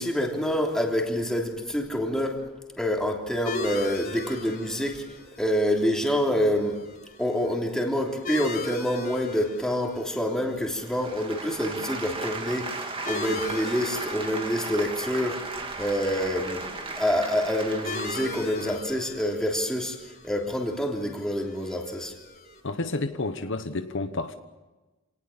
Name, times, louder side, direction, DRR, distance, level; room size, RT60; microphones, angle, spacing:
voice 1, 0.0-2.4 2.8-5.0 5.4-6.8 7.2-15.4 15.8-20.0 20.2-22.1, equal, 5° left, 1 dB, 3.2 m, -27 dB
sound 1, 3.4-22.6, left 2 dB, 45° left, 3.4 m, -40 dB
sound 2, 10.8-18.8, right 3 dB, 25° right, 2.3 m, -36 dB
voice 2, 22.6-24.3, left 2 dB, 60° left, 9 dB, 1.2 m, -30 dB
26.5 x 18.5 x 7.3 m, 1.1 s
head